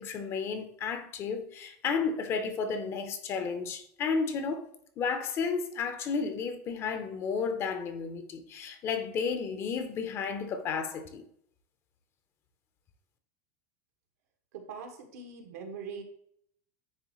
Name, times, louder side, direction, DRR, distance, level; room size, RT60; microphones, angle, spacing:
voice 1, 0.0-4.7 5.0-11.2, left 5 dB, 30° left, 0.7 m, -32 dB
voice 2, 14.5-16.0, right 5 dB, 80° right, 1.5 m, -42 dB
9.6 x 3.3 x 3.1 m
supercardioid pair, 140°, 8 cm